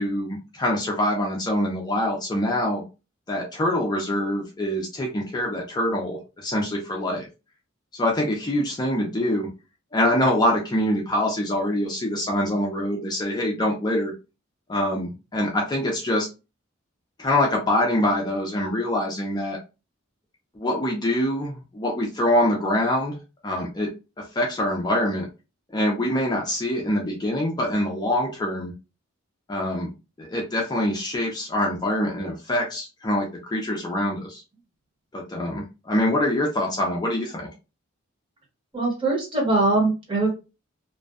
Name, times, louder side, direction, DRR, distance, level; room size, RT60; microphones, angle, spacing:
voice 1, 0.0-2.8 3.3-7.3 7.9-9.5 9.9-14.1 14.7-16.3 17.2-19.6 20.6-23.2 23.4-23.9 24.3-25.3 25.7-28.7 29.5-29.9 30.2-34.4 35.1-37.5, left 1 dB, 20° left, -1 dB, 0.4 m, -24 dB
voice 2, 38.7-40.3, right 2 dB, 25° right, -3 dB, 1.0 m, -22 dB
2.5 x 2.1 x 2.3 m, 0.29 s
head